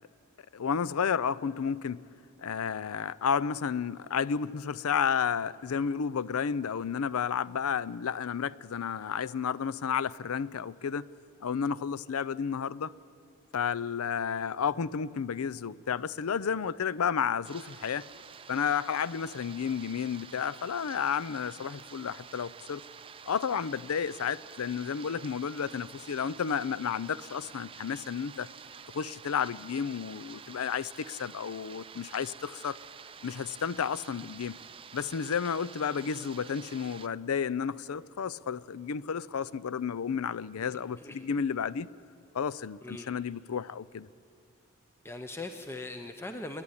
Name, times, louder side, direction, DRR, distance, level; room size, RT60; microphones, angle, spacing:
voice 1, 0.5-2.0 2.4-11.1 11.4-12.9 13.5-18.1 18.5-22.8 23.3-28.5 28.9-32.8 33.2-34.6 34.9-41.9 42.3-44.1, left 7 dB, 85° left, 0.5 m, -32 dB
sound 1, 17.4-37.1, right 7 dB, 25° right, 0.4 m, -49 dB
voice 2, 45.0-46.6, left 2 dB, 10° left, 0.7 m, -40 dB
28.5 x 10.5 x 9.8 m
head